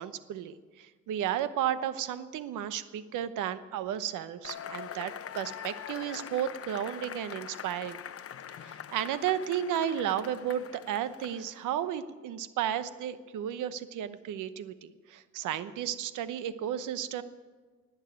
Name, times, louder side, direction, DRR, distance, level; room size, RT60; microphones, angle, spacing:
voice 1, 0.0-8.0 8.6-17.2, right 10 dB, 85° right, 13 dB, 0.9 m, -33 dB
Cheering / Applause / Crowd, 4.4-11.7, left 9 dB, 50° left, 0.8 m, -43 dB
19.5 x 7.3 x 9.2 m, 1.4 s
cardioid pair, 90°, 30 cm